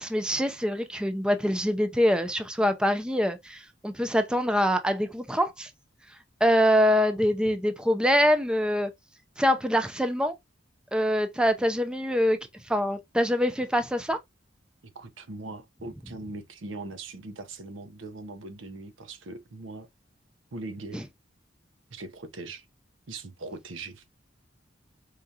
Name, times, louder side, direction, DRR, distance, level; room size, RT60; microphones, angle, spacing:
voice 1, 0.0-5.7 6.4-8.9 9.4-10.3 10.9-12.4 12.7-14.2 20.9-21.0, equal, 5° right, 0.4 m, -24 dB
voice 2, 14.8-19.9 20.5-21.0 21.9-22.7 23.1-24.0, right 2 dB, 85° right, 0.7 m, -40 dB
4.7 x 2.3 x 2.7 m
head